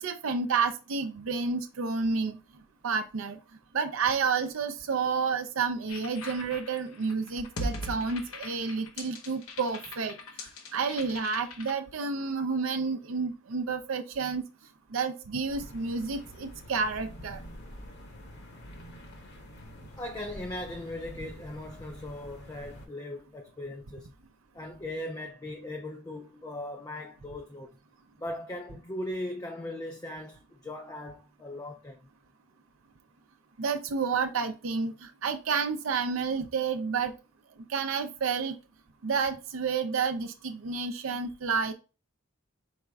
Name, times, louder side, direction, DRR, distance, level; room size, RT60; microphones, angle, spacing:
voice 1, 0.0-2.4 2.8-3.4 3.7-10.2 10.7-14.4 14.9-17.4 33.6-37.1 37.7-38.6 39.0-41.7, right 5 dB, 70° right, 0.5 m, -30 dB
sound 1, 5.9-11.7, left 1 dB, 90° left, 0.8 m, -40 dB
sound 2, 15.5-22.9, equal, 50° left, 1.1 m, -47 dB
voice 2, 20.0-24.1 24.5-27.7 28.2-32.0, left 1 dB, 15° left, 0.4 m, -39 dB
4.9 x 4.3 x 2.3 m
head